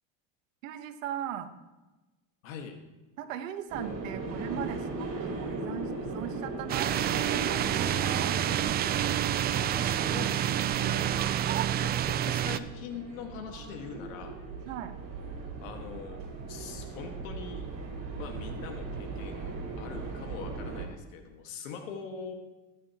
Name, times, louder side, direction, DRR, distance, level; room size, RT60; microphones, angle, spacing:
voice 1, 0.6-1.5 3.2-8.4 14.6-14.9, right 10 dB, 90° right, 9 dB, 1.2 m, -38 dB
voice 2, 2.4-2.8 9.5-11.3 11.8-14.3 15.6-16.2 16.5-17.7 18.2-22.3, left 6 dB, 90° left, 4 dB, 1.8 m, -42 dB
sound 1, 3.7-20.9, right 3 dB, 45° right, 4.4 m, -39 dB
sound 2, 6.7-12.6, right 11 dB, 25° right, 0.4 m, -28 dB
20.5 x 9.4 x 3.0 m, 1.1 s
supercardioid pair, 120°, 38 cm